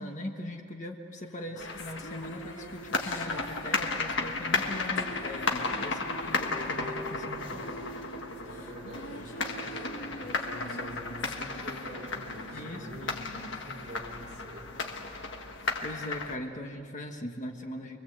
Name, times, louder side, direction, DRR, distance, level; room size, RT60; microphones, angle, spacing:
voice 1, 0.0-7.7 12.5-13.5 15.8-18.0, left 1 dB, 35° left, 3 dB, 1.4 m, -40 dB
sound 1, 1.3-14.9, equal, 80° left, 2.2 m, -45 dB
sound 2, 1.6-16.4, left 3 dB, 55° left, 1.6 m, -34 dB
voice 2, 8.4-14.7, right 1 dB, 35° right, -3 dB, 3.9 m, -46 dB
28.5 x 22.5 x 8.0 m, 2.5 s
head